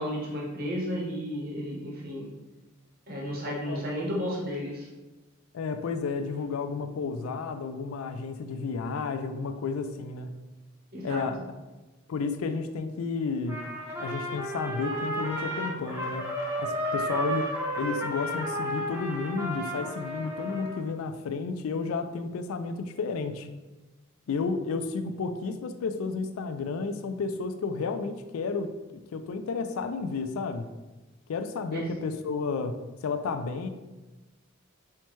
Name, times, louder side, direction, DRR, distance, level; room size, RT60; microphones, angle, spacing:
voice 1, 0.0-2.3 3.1-4.9 10.9-11.2 31.7-31.9, equal, 45° right, -3 dB, 0.8 m, -33 dB
voice 2, 5.5-10.4 11.0-11.4 12.1-13.6 14.0-16.3 16.6-17.5 17.8-23.5 24.3-28.7 29.1-30.7 31.3-33.7, left 4 dB, 80° left, 9 dB, 0.4 m, -32 dB
Trumpet, 13.5-20.8, equal, 10° right, 0.6 m, -32 dB
5.6 x 2.2 x 3.0 m, 1.1 s
head